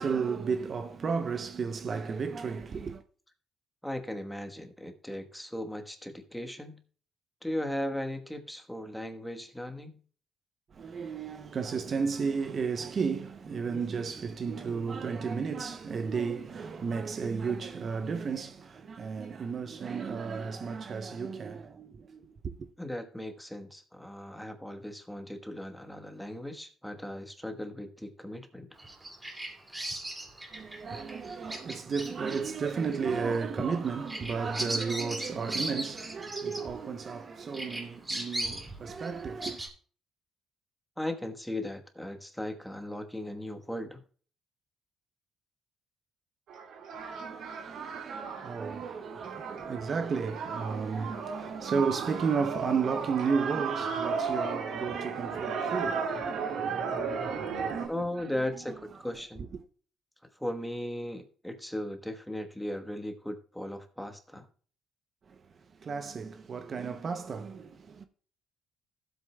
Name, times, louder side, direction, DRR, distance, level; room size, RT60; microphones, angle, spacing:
voice 1, 0.0-3.0 10.7-22.7 30.5-39.6 46.9-58.3 65.3-65.4 65.8-68.0, right 5 dB, 45° right, 0.6 m, -33 dB
voice 2, 3.8-6.8 7.4-10.0 22.8-28.7 41.0-44.0 57.9-59.5 60.4-64.5, left 1 dB, 5° left, 1.1 m, -37 dB
Bird vocalization bird call bird song, 28.8-37.2 37.5-39.7, right 1 dB, 15° right, 2.2 m, -38 dB
sound 1, 46.5-57.9, right 5 dB, 70° right, 2.0 m, -35 dB
15.5 x 8.0 x 2.2 m
cardioid pair, 110°, 0 cm